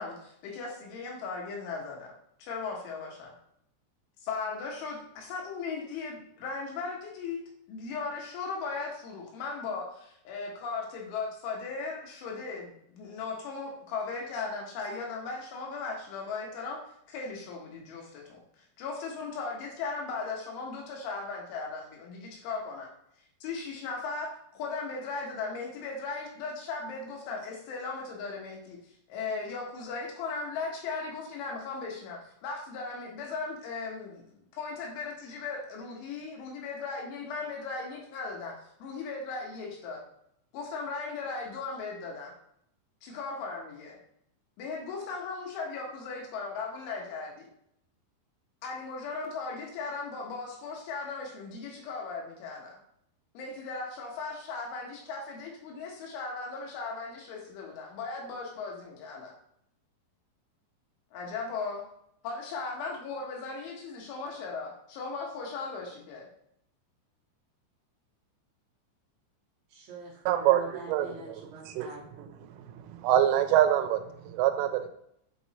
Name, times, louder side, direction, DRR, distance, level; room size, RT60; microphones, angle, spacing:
voice 1, 0.0-2.1 2.4-3.3 4.2-7.4 7.7-16.8 17.1-18.4 18.8-22.9 23.4-28.8 29.1-40.0 40.5-42.3 43.0-44.0 44.6-47.5 48.6-52.8 53.4-59.3 61.1-61.9 62.2-66.3, left 4 dB, 80° left, -1 dB, 3.7 m, -37 dB
voice 2, 69.7-72.4, right 3 dB, 70° right, -3 dB, 2.8 m, -44 dB
voice 3, 70.3-71.4 71.7-71.9 73.0-74.0 74.3-74.9, right 11 dB, 90° right, 8 dB, 3.2 m, -24 dB
7.8 x 3.0 x 4.1 m, 0.73 s
omnidirectional pair, 5.5 m